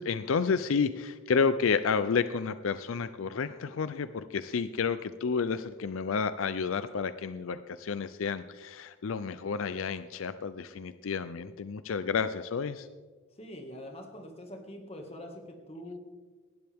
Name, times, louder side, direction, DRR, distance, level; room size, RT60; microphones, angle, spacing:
voice 1, 0.0-12.9, left 5 dB, 80° left, 13 dB, 0.5 m, -30 dB
voice 2, 13.4-16.0, left 1 dB, 30° left, 3 dB, 1.9 m, -44 dB
18.0 x 12.5 x 3.5 m, 1.4 s
head